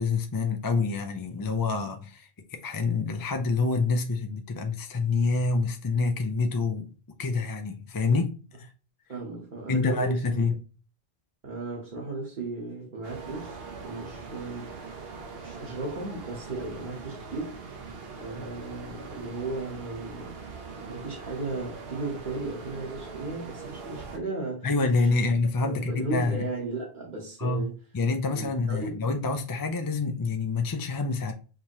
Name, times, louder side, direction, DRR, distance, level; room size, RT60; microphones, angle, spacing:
voice 1, 0.0-6.9 7.2-8.7 9.7-10.6 24.6-26.4 27.4-27.7 27.9-31.3, left 3 dB, 35° left, 0.4 m, -27 dB
voice 2, 9.1-10.4 11.4-17.5 18.2-20.4 20.7-24.7 25.6-27.7 28.3-29.0, right 3 dB, 50° right, 1.3 m, -36 dB
sound 1, 13.0-24.2, right 4 dB, 70° right, 1.1 m, -42 dB
5.1 x 2.8 x 2.9 m
omnidirectional pair, 1.1 m